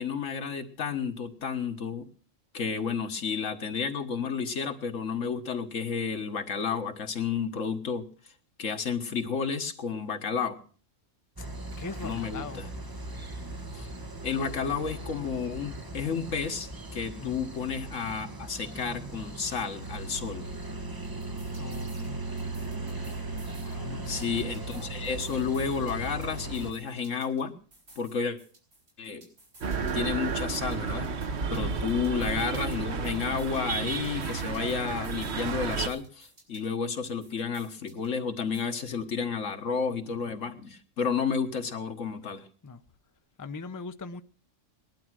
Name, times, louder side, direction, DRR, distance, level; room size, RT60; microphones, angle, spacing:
voice 1, 0.0-2.1 2.5-8.0 8.6-10.6 12.0-12.7 13.7-13.9 14.2-20.5 24.1-27.5 28.0-28.4 29.0-29.2 29.9-31.1 31.5-42.5, left 6 dB, 85° left, 1.8 m, -31 dB
sound 1, 11.4-26.7, right 2 dB, 20° right, 1.1 m, -38 dB
voice 2, 11.8-12.6 17.2-17.4 21.6-22.2 23.6-24.2 31.5-31.7 42.6-42.8 43.4-44.2, left 4 dB, 20° left, 0.6 m, -40 dB
sound 2, 21.0-22.1 22.4-23.7 24.0-27.4 27.7-30.1 30.4-32.8 33.0-35.4 35.7-38.1 38.4-38.6, right 2 dB, 75° right, 5.4 m, -55 dB
sound 3, 29.6-35.9, right 5 dB, 60° right, 1.3 m, -32 dB
19.5 x 11.5 x 6.2 m
omnidirectional pair, 1.3 m